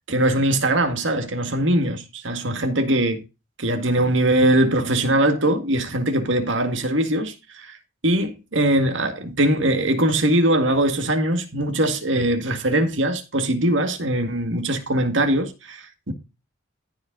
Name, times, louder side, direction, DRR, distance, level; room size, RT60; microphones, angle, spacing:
voice 1, 0.1-3.2 3.6-7.8 8.0-16.1, right 1 dB, 70° right, 1.9 m, -21 dB
14.0 x 5.2 x 4.0 m
head